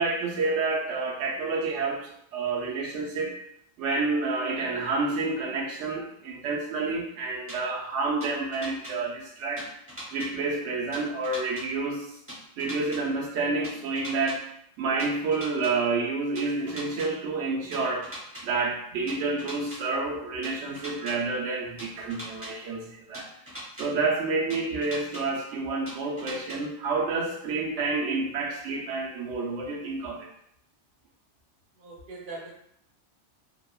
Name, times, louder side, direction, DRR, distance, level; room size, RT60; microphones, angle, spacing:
voice 1, 0.0-3.4 3.8-9.7 10.1-12.1 12.6-14.4 14.8-18.1 18.4-23.3 23.8-30.3, right 3 dB, 90° right, -2 dB, 0.9 m, -29 dB
sound 1, 7.5-7.6 8.2-8.9 9.6-10.3 10.9-11.6 12.3-13.0 13.6-14.4 15.0-15.7 16.3-17.1 17.7-18.4 19.1-19.8 20.4-21.1 21.8-22.5 23.1-23.9 24.5-25.2 25.9-26.6, equal, 15° right, 0.6 m, -40 dB
voice 2, 31.8-32.5, right 3 dB, 65° right, -2 dB, 0.8 m, -41 dB
2.8 x 2.1 x 2.3 m, 0.74 s
omnidirectional pair, 1.2 m